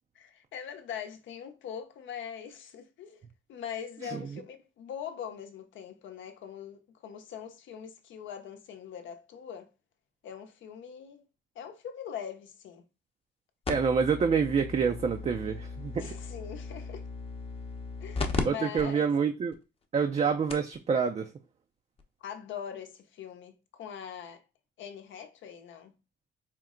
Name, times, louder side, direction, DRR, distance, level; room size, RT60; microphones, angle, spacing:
voice 1, 0.1-3.2 3.5-9.7 10.2-11.2 11.6-12.8 16.0-17.0 18.0-19.1 22.2-24.4 24.8-26.0, left 8 dB, 75° left, 0.7 m, -42 dB
sound 1, 13.6-18.4 18.8-18.9 19.5-19.6 20.2-20.3 20.5-20.8 22.0-22.1, left 4 dB, 30° left, 0.7 m, -36 dB
voice 2, 13.7-16.1 18.4-19.5 19.9-21.3, right 6 dB, 35° right, 0.4 m, -27 dB
4.4 x 2.1 x 3.6 m
cardioid pair, 90°, 20 cm